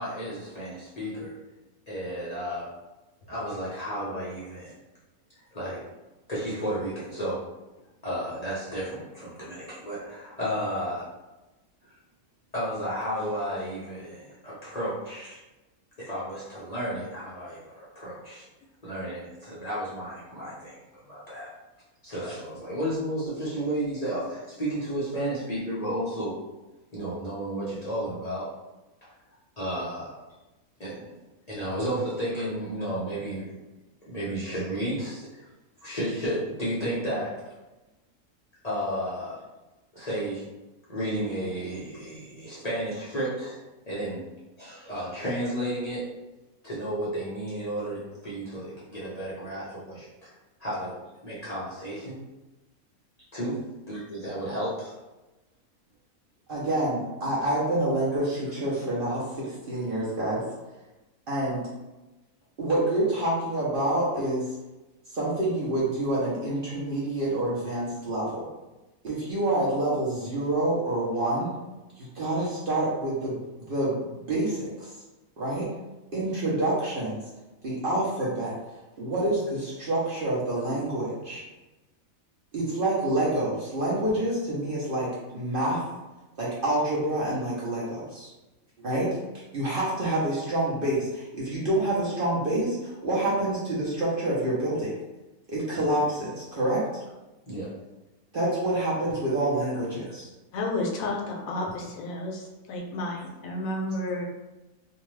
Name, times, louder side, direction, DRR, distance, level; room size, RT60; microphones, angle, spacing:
voice 1, 0.0-1.4 1.9-2.7 3.3-4.7 5.5-5.8 6.3-7.4 8.0-11.1 11.8-12.0 12.5-15.4 16.0-18.5 18.8-20.8 21.1-21.5 22.0-26.4 26.9-28.6 29.0-29.1 29.6-30.1 30.8-31.1 31.5-33.5 34.1-35.5 35.8-37.4 38.6-39.4 39.9-40.5 40.9-43.6 43.9-44.3 44.6-46.1 46.6-50.3 50.6-50.9 51.2-52.2 53.3-53.6 53.9-54.9 57.2-57.3 97.5-97.7 99.6-99.7 103.9-104.0, right 1 dB, 40° left, -8 dB, 0.6 m, -32 dB
voice 2, 56.5-60.4 61.3-61.6 62.6-64.5 65.1-68.4 69.0-71.5 72.0-74.9 75.4-75.7 76.1-77.2 77.6-78.5 79.0-81.4 82.5-85.8 86.4-88.3 88.8-89.2 89.5-94.9 95.5-96.8 98.3-100.3, right 1 dB, 50° right, -7 dB, 0.7 m, -27 dB
voice 3, 100.5-104.2, left 2 dB, 75° left, 0 dB, 1.0 m, -31 dB
2.6 x 2.2 x 3.1 m, 1.1 s
omnidirectional pair, 1.5 m